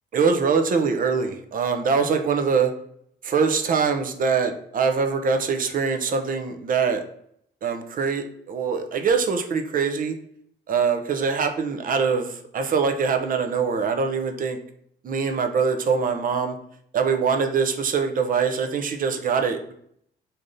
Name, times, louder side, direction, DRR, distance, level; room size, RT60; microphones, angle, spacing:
voice 1, 0.1-2.7 3.2-7.0 7.6-10.1 10.7-14.6 15.0-16.6 16.9-19.7, right 5 dB, 45° right, 6 dB, 0.5 m, -23 dB
3.2 x 2.7 x 2.5 m, 0.68 s
cardioid pair, 90°, 20 cm